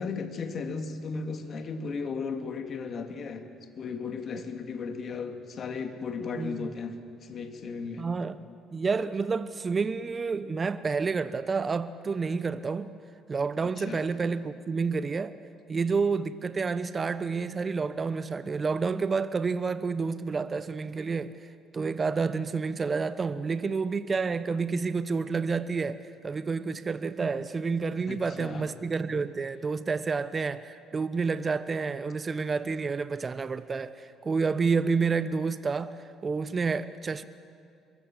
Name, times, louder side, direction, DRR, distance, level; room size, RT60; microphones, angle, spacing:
voice 1, 0.0-3.4 3.7-6.9 7.2-8.1 13.8-14.0 28.1-28.7, left 5 dB, 50° left, 7 dB, 2.4 m, -35 dB
voice 2, 6.4-6.7 8.0-8.4 8.7-12.9 13.3-15.3 15.7-36.0 36.2-37.2, right 4 dB, 35° right, 13 dB, 0.9 m, -29 dB
25.0 x 22.5 x 7.4 m, 2.4 s
supercardioid pair, 65°, 0 cm